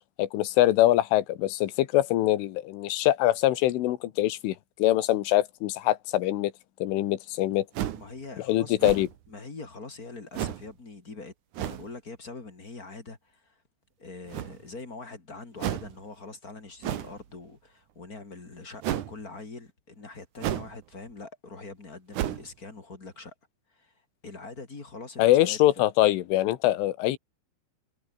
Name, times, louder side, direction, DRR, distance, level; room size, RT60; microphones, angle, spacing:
voice 1, 0.2-6.5 6.8-7.7 8.5-9.1 25.2-27.2, left 15 dB, 90° left, 3.9 m, -23 dB
sound 1, 7.7-8.1 8.8-9.3 10.3-10.7 11.5-11.9 14.3-14.8 15.6-16.0 16.8-17.2 18.8-19.1 20.4-20.8 21.1-21.2 22.1-22.5, right 12 dB, 70° right, 1.9 m, -32 dB
voice 2, 7.9-8.8 9.3-13.6 14.0-23.3 23.7-23.9 24.2-25.8, left 3 dB, 20° left, 2.9 m, -43 dB
omnidirectional pair, 5.5 m